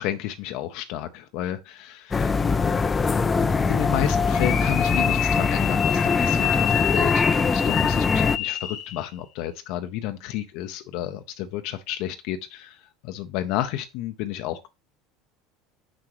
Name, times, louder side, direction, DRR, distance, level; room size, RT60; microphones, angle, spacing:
voice 1, 0.0-2.4 3.1-14.7, left 12 dB, 65° left, 0.6 m, -31 dB
sound 1, 2.1-8.4, left 4 dB, 25° left, 0.4 m, -22 dB
calling whistle, 4.3-9.1, left 10 dB, 45° left, 1.0 m, -28 dB
6.1 x 5.9 x 3.1 m
supercardioid pair, 100°, 0 cm